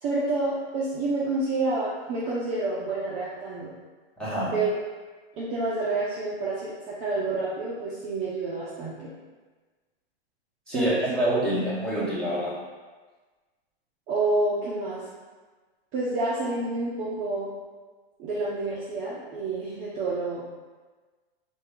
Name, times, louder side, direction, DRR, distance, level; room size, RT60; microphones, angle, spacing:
voice 1, 0.0-3.7 4.5-4.7 5.4-9.1 10.7-11.2 14.1-15.1 15.9-17.5 18.2-20.4, right 2 dB, 25° right, -7 dB, 0.5 m, -28 dB
voice 2, 4.2-4.5 10.7-12.6, right 1 dB, 5° left, -8 dB, 0.8 m, -26 dB
4.1 x 2.2 x 3.5 m, 1.3 s
hypercardioid pair, 145°, 30 cm